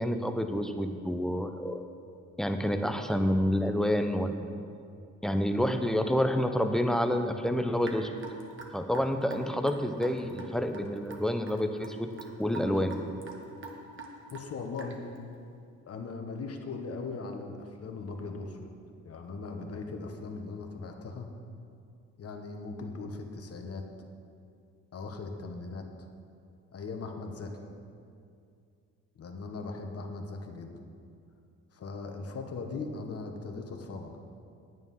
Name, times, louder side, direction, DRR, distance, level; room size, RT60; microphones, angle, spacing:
voice 1, 0.0-1.8 2.4-4.5 5.2-8.1 8.7-12.1 12.4-12.9, equal, ahead, 6 dB, 0.8 m, -28 dB
Raindrop / Drip, 7.8-15.2, right 3 dB, 40° right, 1.5 m, -45 dB
voice 2, 14.3-15.0 15.8-18.7 19.0-21.3 22.2-23.9 24.9-25.9 26.7-27.6 29.2-30.7 31.7-34.2, left 3 dB, 50° left, 4 dB, 1.4 m, -39 dB
9.6 x 9.0 x 5.6 m, 2.4 s
cardioid pair, 90°, 30 cm